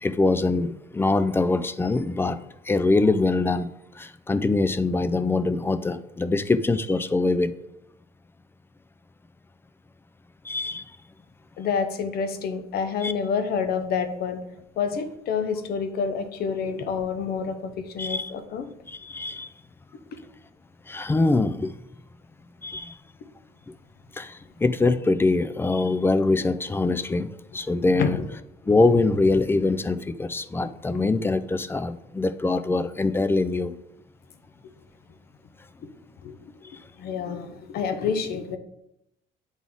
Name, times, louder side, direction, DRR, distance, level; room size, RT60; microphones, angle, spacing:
voice 1, 0.0-2.4 2.7-7.5 10.5-10.8 13.0-13.1 18.0-18.3 18.9-19.5 20.9-21.7 22.6-23.0 24.2-28.2 28.7-33.7, left 3 dB, 15° left, 0.3 m, -23 dB
voice 2, 11.6-14.4 14.8-17.5 17.9-18.6 28.0-28.2 36.2-36.4 37.0-38.6, left 6 dB, 65° left, 0.8 m, -28 dB
8.8 x 4.1 x 3.6 m
cardioid pair, 110°, 17 cm